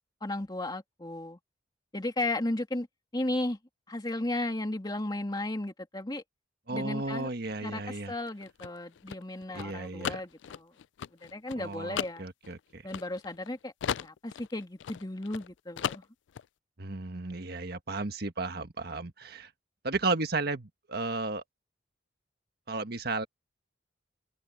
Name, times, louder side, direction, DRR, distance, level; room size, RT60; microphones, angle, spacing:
voice 1, 0.2-1.4 1.9-2.9 3.1-3.6 3.9-6.2 6.7-7.3 7.6-10.7 11.2-12.2 12.8-13.7 14.0-16.0, left 1 dB, 25° left, 2.1 m, -34 dB
voice 2, 6.7-8.1 9.5-10.2 11.6-12.8 16.8-19.5 19.8-21.4 22.7-23.3, right 3 dB, 60° right, 1.6 m, -34 dB
sound 1, 8.2-13.5 13.8-15.5 15.8-16.5, left 9 dB, 80° left, 0.4 m, -36 dB
open air
head